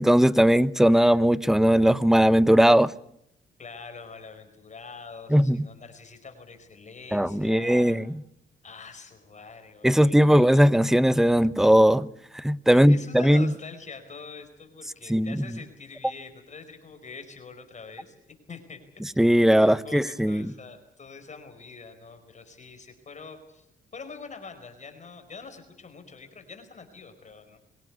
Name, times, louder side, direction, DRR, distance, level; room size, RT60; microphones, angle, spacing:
voice 1, 0.0-2.9 5.3-5.7 7.1-8.0 9.8-12.1 12.3-13.5 15.1-15.4 19.2-20.4, equal, ahead, 0.8 m, -19 dB
voice 2, 3.6-8.0 8.6-10.9 12.7-18.1 18.5-19.2 19.4-23.7 23.9-27.6, left 4 dB, 35° left, 4.8 m, -44 dB
24.5 x 16.5 x 9.4 m
cardioid pair, 90°, 20 cm